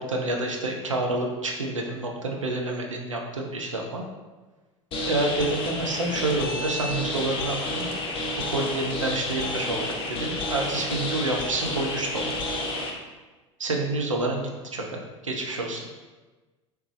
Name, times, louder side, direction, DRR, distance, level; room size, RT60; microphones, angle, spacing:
voice 1, 0.0-4.0 5.1-7.9 8.5-12.4 13.6-15.9, right 2 dB, 80° right, 1 dB, 0.5 m, -28 dB
sound 1, 4.9-12.9, left 1 dB, 35° left, 0.7 m, -30 dB
3.2 x 3.0 x 3.2 m, 1.2 s
figure-of-eight pair, 75°, 16 cm